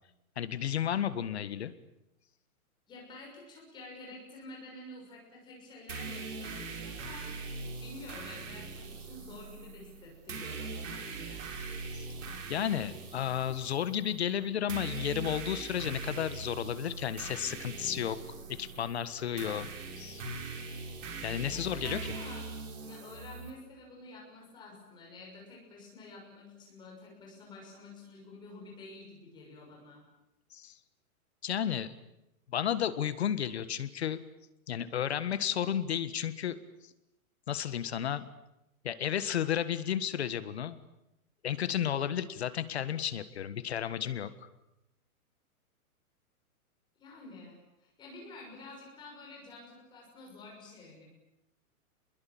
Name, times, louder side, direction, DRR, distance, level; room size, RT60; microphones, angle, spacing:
voice 1, 0.4-1.7 11.9-12.1 12.5-18.2 18.5-19.7 20.0-20.2 21.2-22.0 30.5-30.7 31.4-31.9 32.5-34.2 34.7-36.6 37.5-38.3 38.8-40.8 41.4-44.3, left 9 dB, 45° left, 13 dB, 1.6 m, -32 dB
voice 2, 2.9-11.5 21.5-22.5 22.8-30.0 47.0-51.0, left 2 dB, 10° left, -2 dB, 6.3 m, -49 dB
sound 1, 5.9-23.5, right 4 dB, 55° right, 6.3 m, -41 dB
29.5 x 21.5 x 8.8 m, 0.87 s
hypercardioid pair, 180°, 44 cm